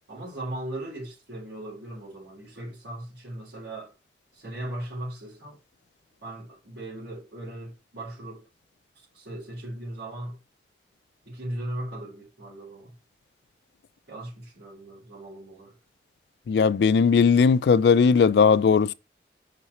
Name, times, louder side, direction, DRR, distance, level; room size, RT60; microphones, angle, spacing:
voice 1, 0.1-3.9 4.3-5.6 6.2-8.5 8.9-10.4 11.3-12.9 14.1-15.7, right 1 dB, 80° right, 4.3 m, -38 dB
voice 2, 16.5-18.9, left 5 dB, 75° left, 0.3 m, -18 dB
6.0 x 3.9 x 4.3 m
head